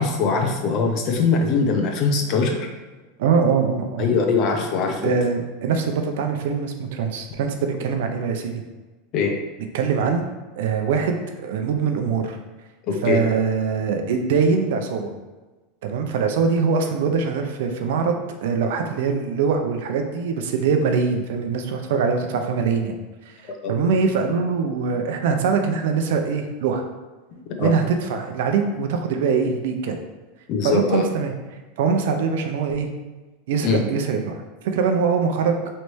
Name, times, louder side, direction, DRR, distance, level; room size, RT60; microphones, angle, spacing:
voice 1, 0.0-2.7 4.0-5.1 9.1-9.3 12.9-13.2 23.6-23.7 27.6-27.7 30.5-31.1 33.6-33.8, left 4 dB, 50° left, 3 dB, 0.7 m, -21 dB
voice 2, 3.2-4.1 5.0-8.6 9.7-10.2 10.6-12.4 13.0-15.1 15.8-18.1 18.4-22.9 23.3-23.4 23.7-26.8 27.6-29.9 30.6-31.3 31.8-32.9 33.5-35.6, right 5 dB, 75° right, 5 dB, 0.5 m, -23 dB
3.2 x 3.2 x 4.0 m, 1.2 s
hypercardioid pair, 115°, 0 cm